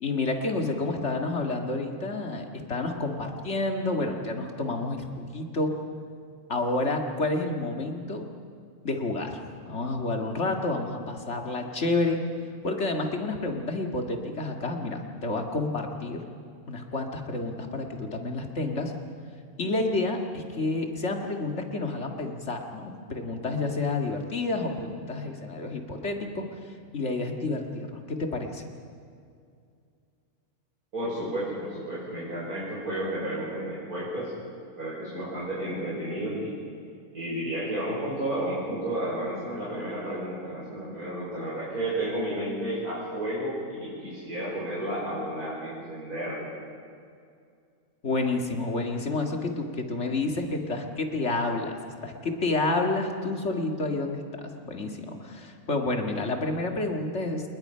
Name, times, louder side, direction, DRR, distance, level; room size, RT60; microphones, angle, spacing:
voice 1, 0.0-5.7 6.5-8.2 8.8-9.4 9.7-12.2 12.6-16.2 16.7-18.9 19.6-26.5 26.9-28.6 48.0-51.8 52.0-54.2 54.6-57.4, left 2 dB, 50° left, 3 dB, 2.2 m, -29 dB
voice 2, 30.9-34.3 34.8-36.5 37.1-46.5, right 1 dB, 80° right, -7 dB, 5.6 m, -32 dB
28.5 x 20.0 x 5.7 m, 2.3 s
omnidirectional pair, 1.5 m